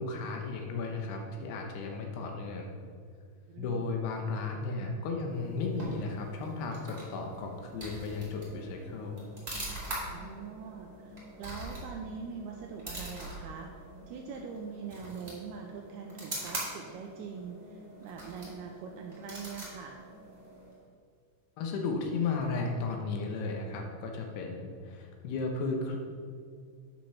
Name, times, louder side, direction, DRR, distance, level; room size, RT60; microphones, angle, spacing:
voice 1, 0.0-2.7 3.6-9.2 21.6-26.0, left 3 dB, 75° left, 2 dB, 2.8 m, -34 dB
voice 2, 3.5-3.9 10.1-13.7 14.1-20.0, right 6 dB, 90° right, 2 dB, 2.2 m, -43 dB
sound 1, 5.3-20.8, right 1 dB, 35° right, 0.6 m, -44 dB
8.9 x 5.3 x 5.7 m, 2.1 s
omnidirectional pair, 5.2 m